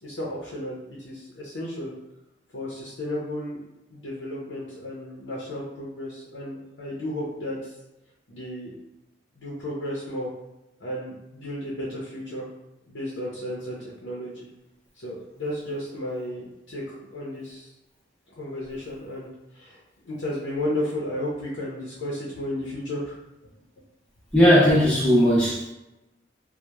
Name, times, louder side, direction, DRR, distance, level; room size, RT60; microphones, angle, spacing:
voice 1, 0.0-1.9 2.5-3.6 3.9-7.7 8.3-8.7 9.4-10.3 10.8-12.5 12.9-14.5 15.0-17.7 18.3-19.3 19.5-19.8 20.1-23.2, left 1 dB, 75° left, -5 dB, 0.6 m, -33 dB
voice 2, 24.3-25.7, equal, 5° left, -8 dB, 0.6 m, -17 dB
2.8 x 2.1 x 2.2 m, 0.96 s
head